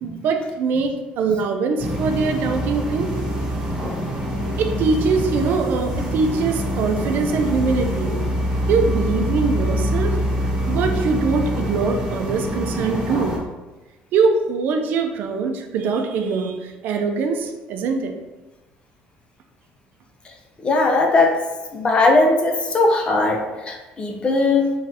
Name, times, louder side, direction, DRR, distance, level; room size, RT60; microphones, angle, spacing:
voice 1, 0.0-3.1 4.6-8.2 8.7-10.2 10.7-13.4 14.1-18.1, right 4 dB, 65° right, 5 dB, 0.4 m, -22 dB
sound 1, 1.8-13.4, equal, 20° right, 1.2 m, -25 dB
voice 2, 20.6-21.3 21.7-24.7, left 3 dB, 30° left, 2 dB, 0.6 m, -18 dB
3.8 x 3.1 x 2.8 m, 1.1 s
cardioid pair, 125°, 3 cm